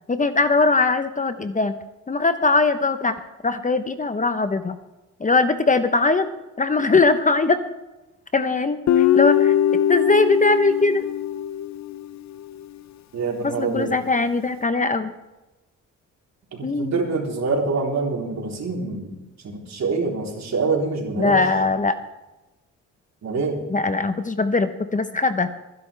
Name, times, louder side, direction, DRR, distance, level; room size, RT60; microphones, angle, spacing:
voice 1, 0.1-1.7 2.1-3.1 3.4-4.8 5.2-6.3 6.6-7.6 8.3-11.1 13.4-15.1 16.6-16.9 21.2-22.0 23.7-25.5, left 3 dB, 25° left, 10 dB, 1.0 m, -21 dB
Guitar, 8.9-12.2, left 10 dB, 60° left, 0.8 m, -21 dB
voice 2, 13.1-13.9 16.5-19.2 19.4-21.4 23.2-23.6, right 4 dB, 60° right, 0 dB, 3.7 m, -25 dB
23.5 x 10.5 x 3.4 m, 1.0 s
cardioid pair, 80°, 31 cm